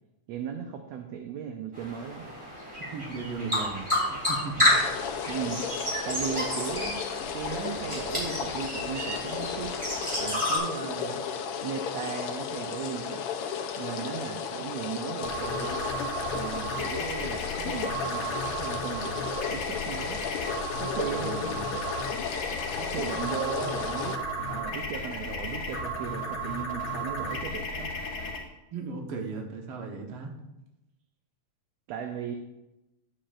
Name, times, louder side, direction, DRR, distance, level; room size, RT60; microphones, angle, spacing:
voice 1, 0.3-2.3 5.3-7.0 7.3-9.7 10.2-11.2 11.6-13.2 13.8-15.8 16.3-20.2 20.8-21.5 22.8-27.9 31.9-32.4, right 8 dB, 75° right, 4 dB, 1.6 m, -37 dB
sound 1, 1.7-10.6, left 1 dB, 10° right, 3.3 m, -30 dB
voice 2, 2.9-4.8 21.1-21.8 28.7-30.3, right 4 dB, 60° right, 2 dB, 1.7 m, -37 dB
sound 2, 4.6-24.2, left 7 dB, 85° left, 1.2 m, -34 dB
sound 3, 15.2-28.4, right 1 dB, 45° left, 2.4 m, -34 dB
11.0 x 8.6 x 2.5 m, 0.95 s
omnidirectional pair, 3.5 m